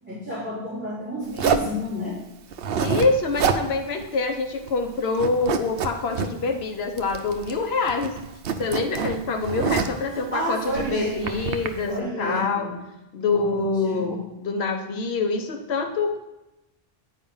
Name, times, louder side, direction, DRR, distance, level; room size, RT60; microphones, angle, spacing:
voice 1, 0.0-2.2 10.1-11.4 11.9-12.7 13.3-14.2, equal, 10° right, -13 dB, 3.2 m, -30 dB
Zipper (clothing), 1.4-1.7 2.5-3.7 4.0-4.1 4.5-4.9 5.2-6.3 7.0-7.6 7.9-10.0 10.6-11.7, right 6 dB, 70° right, 0.9 m, -26 dB
voice 2, 2.8-8.2 8.6-12.7 13.1-16.2, left 3 dB, 80° left, 5 dB, 1.0 m, -25 dB
9.2 x 4.9 x 5.4 m, 0.95 s
omnidirectional pair, 1.0 m